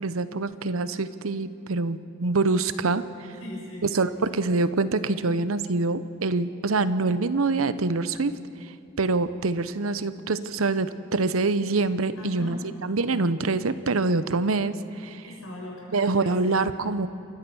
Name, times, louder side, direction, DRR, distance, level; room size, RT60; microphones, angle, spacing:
voice 1, 0.0-3.3 3.9-8.4 9.0-15.2 15.9-17.1, right 3 dB, 90° right, 13 dB, 0.8 m, -25 dB
voice 2, 3.4-3.9 12.2-12.6 15.2-16.6, left 1 dB, 90° left, -2 dB, 6.8 m, -39 dB
28.5 x 14.0 x 7.1 m, 2.6 s
head